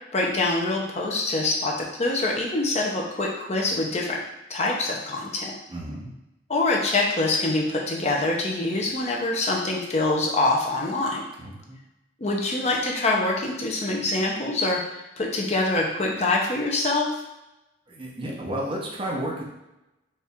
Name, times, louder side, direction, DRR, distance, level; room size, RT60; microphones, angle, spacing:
voice 1, 0.1-4.2 4.5-5.5 6.5-11.3 12.2-14.8 15.2-17.1, left 2 dB, 35° left, -1 dB, 0.6 m, -25 dB
voice 2, 5.7-6.2 11.4-11.8 17.9-19.4, right 1 dB, 30° right, -3 dB, 0.7 m, -32 dB
4.3 x 2.5 x 3.5 m, 0.93 s
head